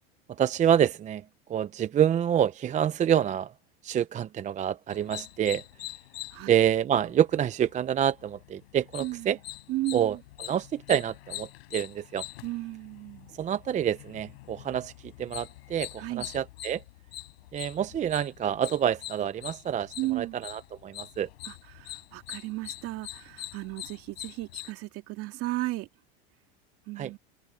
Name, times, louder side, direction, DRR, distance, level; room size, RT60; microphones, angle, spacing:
voice 1, 0.4-1.2 1.5-3.5 3.8-5.6 6.5-9.4 9.9-12.2 13.3-16.8 17.5-21.3 27.0-27.1, right 9 dB, 25° right, 0.6 m, -27 dB
sound 1, 4.9-24.7, left 15 dB, 80° left, 4.4 m, -43 dB
voice 2, 9.0-9.4 9.7-10.2 12.4-13.3 16.0-16.3 20.0-20.4 21.5-25.9 26.9-27.2, right 18 dB, 50° right, 2.1 m, -34 dB
supercardioid pair, 125°, 31 cm